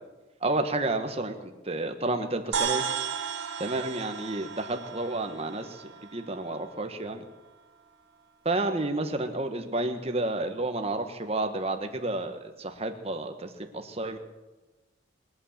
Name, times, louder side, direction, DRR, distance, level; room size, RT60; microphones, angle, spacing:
voice 1, 0.4-2.8 3.6-7.2 8.4-14.2, right 2 dB, 30° right, 6 dB, 1.3 m, -31 dB
sound 1, 2.5-7.1, right 7 dB, 80° right, 2.0 m, -34 dB
22.0 x 8.7 x 7.5 m, 1.1 s
head